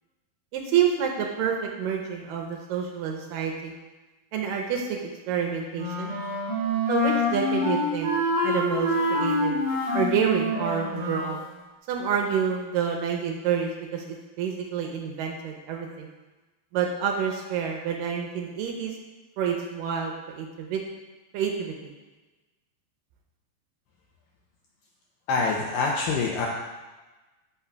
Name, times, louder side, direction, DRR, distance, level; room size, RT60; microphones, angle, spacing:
voice 1, 0.5-3.7 4.3-6.2 6.9-8.1 8.4-9.6 9.9-11.4 11.9-16.1 16.7-18.9 19.4-20.8 21.3-21.9, right 7 dB, 80° right, 1 dB, 2.1 m, -28 dB
Wind instrument woodwind instrument, 5.7-11.4, left 1 dB, 45° right, 1.6 m, -26 dB
voice 2, 25.3-26.5, left 4 dB, 80° left, -2 dB, 2.0 m, -25 dB
12.5 x 5.6 x 2.3 m, 1.2 s
omnidirectional pair, 4.5 m